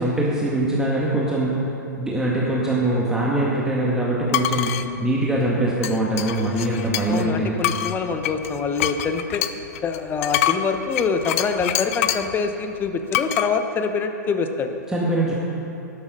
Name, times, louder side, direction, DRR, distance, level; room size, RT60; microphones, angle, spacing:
voice 1, 0.0-1.6 2.0-4.7 5.0-7.6 14.9-15.3, right 1 dB, 5° right, -6 dB, 1.8 m, -22 dB
sound 1, 4.3-4.9 5.8-7.3 7.6-12.3 13.1-13.5, left 12 dB, 50° left, 0.6 m, -25 dB
voice 2, 7.1-9.5 9.8-14.7, left 5 dB, 20° left, 7 dB, 1.0 m, -25 dB
12.5 x 12.0 x 5.4 m, 2.9 s
hypercardioid pair, 115°, 10 cm